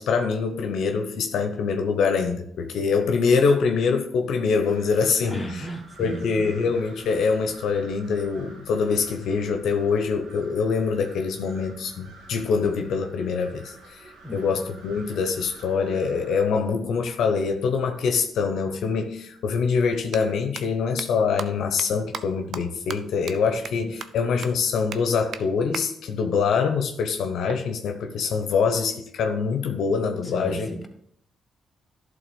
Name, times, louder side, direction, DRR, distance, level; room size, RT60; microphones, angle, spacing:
voice 1, 0.0-5.4 6.0-30.7, left 5 dB, 75° left, 6 dB, 0.8 m, -24 dB
sound 1, 4.6-16.4, right 3 dB, 85° right, 2.1 m, -49 dB
voice 2, 5.2-6.4 14.2-14.7 23.7-23.9 30.2-30.9, equal, 20° left, 2 dB, 1.5 m, -35 dB
sound 2, 20.1-20.2 20.6-20.7 21.0-21.1 21.4-21.5 21.8-21.9 22.1-22.2 22.5-22.6 22.9-23.0 23.3-23.4 23.7-23.8 24.0-24.1 24.4-24.5 24.9-25.0 25.3-25.4 25.7-25.8 27.5-28.5, right 6 dB, 60° right, 0.6 m, -35 dB
11.5 x 3.9 x 5.2 m, 0.69 s
cardioid pair, 80°, 0 cm